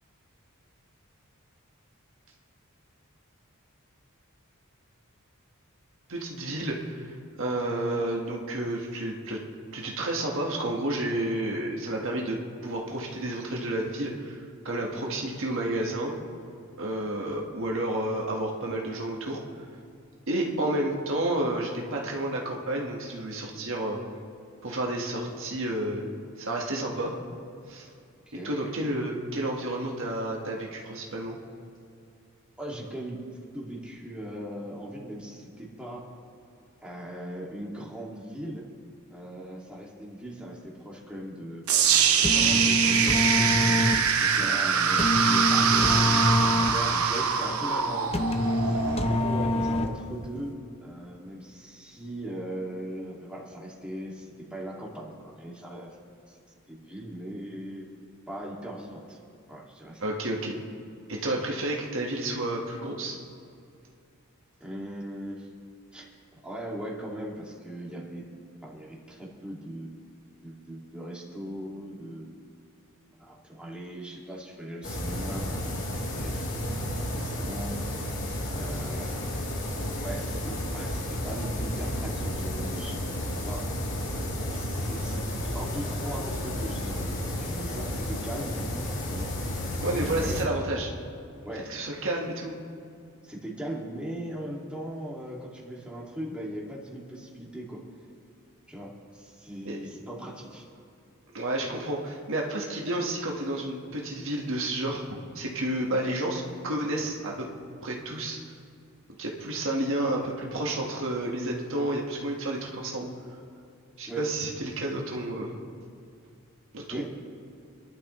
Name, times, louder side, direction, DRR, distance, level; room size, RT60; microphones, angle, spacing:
voice 1, 6.1-7.1 7.4-9.4 9.7-16.1 16.8-19.4 20.3-24.0 24.6-26.0 26.4-27.1 27.7-27.9 28.4-31.4 60.0-60.6 61.1-63.2 89.8-90.9 91.7-92.6 99.6-99.8 101.3-105.0 105.3-107.5 107.8-108.4 109.2-113.1 114.0-115.6 116.7-117.0, right 1 dB, 60° right, -1 dB, 1.6 m, -30 dB
voice 2, 32.6-33.2 33.5-36.1 36.8-38.7 39.1-41.6 42.3-48.1 48.6-48.8 49.1-55.9 56.3-56.4 56.7-57.9 58.3-59.2 59.5-60.1 64.6-65.5 65.9-66.1 66.4-68.2 68.6-69.9 70.4-72.3 73.2-76.4 77.0-77.8 78.4-79.3 80.0-83.0 83.4-83.7 84.5-89.3 90.0-90.5 91.4-91.7 93.2-97.8 98.7-100.7 105.9-106.0 114.1-114.3 116.9-117.0, right 1 dB, 5° right, -5 dB, 2.3 m, -39 dB
sound 1, 41.7-49.7, right 7 dB, 75° right, 0.9 m, -24 dB
sound 2, 42.0-50.3, left 1 dB, 25° left, 0.8 m, -26 dB
sound 3, 74.8-90.4, left 1 dB, 60° left, 3.0 m, -32 dB
26.5 x 11.5 x 3.2 m, 2.5 s
head